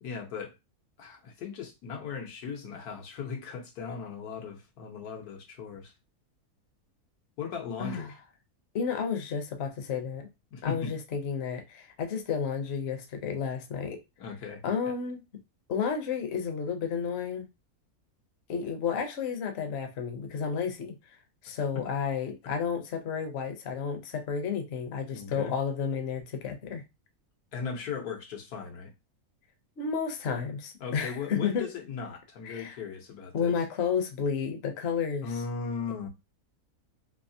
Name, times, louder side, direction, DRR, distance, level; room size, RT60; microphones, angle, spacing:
voice 1, 0.0-0.5 1.0-5.9 7.4-8.1 10.5-10.9 14.2-14.6 25.1-25.5 27.5-28.9 30.8-33.5 35.2-36.1, left 6 dB, 85° left, 1.4 m, -37 dB
voice 2, 7.8-8.1 8.7-10.3 10.6-14.0 14.6-15.2 15.7-17.5 18.5-20.9 21.4-26.8 29.8-31.7 32.4-32.8 33.3-35.3, left 6 dB, 55° left, 0.8 m, -31 dB
3.3 x 2.8 x 2.7 m
omnidirectional pair, 1.6 m